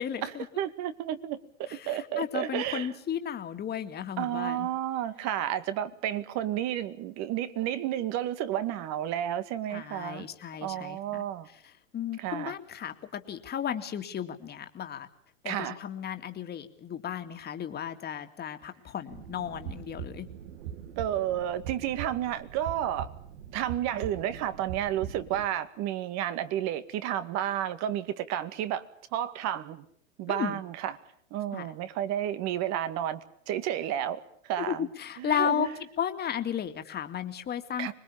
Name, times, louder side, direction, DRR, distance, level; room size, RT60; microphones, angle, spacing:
voice 1, 0.0-0.5 1.7-4.7 9.7-11.2 11.9-15.1 15.4-20.3 30.3-30.6 31.5-31.7 34.6-35.7 36.0-37.9, left 9 dB, 25° left, 2.4 m, -34 dB
voice 2, 0.6-2.9 4.2-10.3 10.6-11.5 12.2-12.5 15.4-15.8 21.0-23.1 23.5-28.8 29.1-29.9 30.2-31.0 31.3-33.2 33.5-34.9 35.2-35.7 37.8-37.9, right 11 dB, 45° right, 2.1 m, -31 dB
sound 1, 19.1-25.5, right 9 dB, 65° right, 2.6 m, -41 dB
25.5 x 21.0 x 8.7 m
hypercardioid pair, 115°, 38 cm